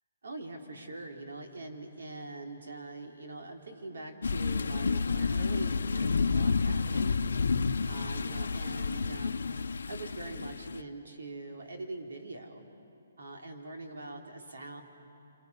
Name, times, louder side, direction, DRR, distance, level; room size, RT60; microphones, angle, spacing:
voice 1, 0.2-7.3 7.9-9.4 9.9-12.6 13.2-14.8, right 2 dB, 85° right, 2 dB, 3.1 m, -43 dB
sound 1, 4.2-10.8, left 4 dB, 85° left, 0.7 m, -30 dB
30.0 x 26.0 x 5.4 m, 2.8 s
hypercardioid pair, 175°, 0 cm